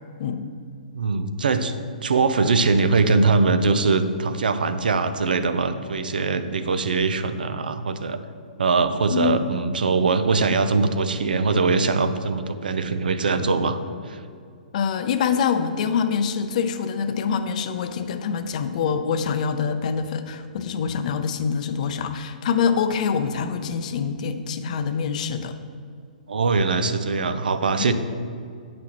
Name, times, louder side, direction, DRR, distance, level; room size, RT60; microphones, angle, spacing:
voice 1, 0.9-1.7 2.0-8.2 8.6-13.8 14.1-14.2 26.3-27.9, right 4 dB, 80° right, 11 dB, 0.5 m, -22 dB
voice 2, 9.1-9.5 14.7-25.5 27.8-27.9, left 6 dB, 55° left, 9 dB, 0.5 m, -25 dB
8.5 x 6.0 x 3.0 m, 2.3 s
hypercardioid pair, 130°, 5 cm